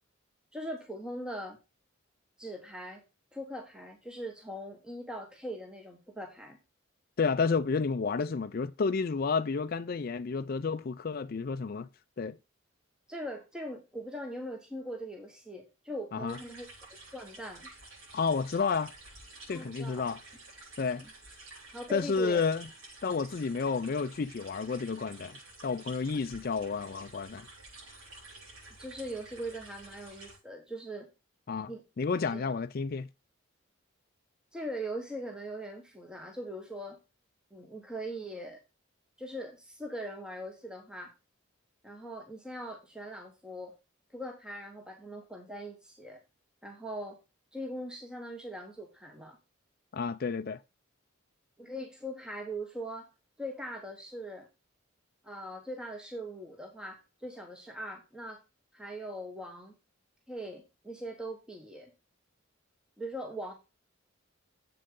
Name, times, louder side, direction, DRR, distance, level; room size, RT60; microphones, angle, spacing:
voice 1, 0.5-1.6 2.4-3.0 3.3-6.6 13.1-16.7 17.1-17.7 19.5-20.1 21.0-21.1 21.7-22.4 28.8-31.1 31.7-31.8 32.3-32.5 34.5-37.0 37.5-38.6 39.2-41.1 41.8-43.7 44.1-46.2 46.6-47.2 47.5-49.4 51.6-53.1 53.4-54.5 55.2-58.4 58.7-59.7 60.3-61.9 63.0-63.5, right 1 dB, 5° right, 1.2 m, -41 dB
voice 2, 7.2-11.9 12.2-12.4 16.1-16.4 18.1-18.9 19.5-20.2 20.8-21.0 21.9-22.7 23.0-27.5 31.5-31.7 32.0-33.1 49.9-50.6, left 5 dB, 45° left, 0.4 m, -31 dB
sound 1, 16.3-30.4, right 2 dB, 85° right, 5.8 m, -51 dB
7.8 x 6.4 x 3.7 m
head